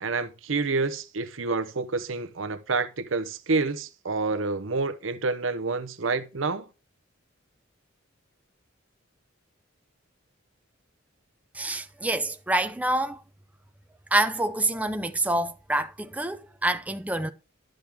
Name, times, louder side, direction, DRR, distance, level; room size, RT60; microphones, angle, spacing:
voice 1, 0.0-6.7, right 3 dB, 80° right, 0.8 m, -28 dB
voice 2, 11.6-13.2 14.1-17.3, right 1 dB, 10° right, 0.6 m, -27 dB
12.0 x 6.3 x 3.6 m
head